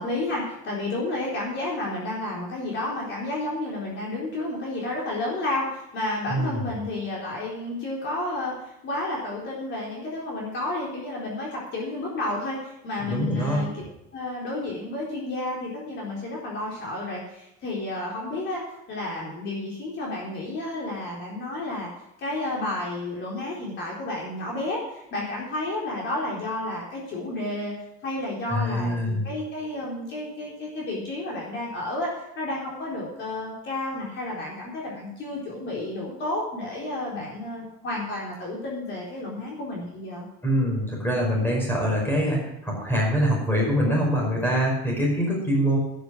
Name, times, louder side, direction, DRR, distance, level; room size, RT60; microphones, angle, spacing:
voice 1, 0.0-13.8 14.1-21.9 22.2-27.7 28.0-40.3, left 2 dB, 40° left, -3 dB, 4.1 m, -31 dB
voice 2, 6.3-6.7 13.0-13.6 28.5-29.2 40.4-45.8, equal, 5° left, -2 dB, 5.3 m, -24 dB
12.0 x 10.5 x 6.2 m, 0.85 s
cardioid pair, 155°, 31 cm